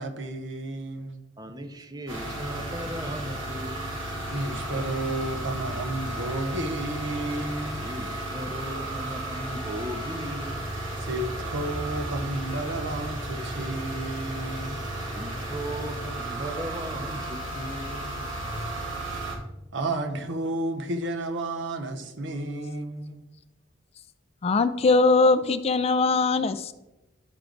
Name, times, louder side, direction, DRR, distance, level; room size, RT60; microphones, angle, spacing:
voice 1, 0.0-1.2 4.3-7.8 11.0-14.9 19.3-19.4 19.7-23.2, right 2 dB, 65° right, 0.8 m, -32 dB
voice 2, 1.4-4.1 7.8-10.7 14.6-14.9 15.1-18.3, equal, 20° right, 0.7 m, -37 dB
sound 1, 2.1-19.3, right 1 dB, 85° right, 2.6 m, -34 dB
voice 3, 24.4-26.7, left 3 dB, 30° left, 0.3 m, -21 dB
12.0 x 4.6 x 3.9 m
head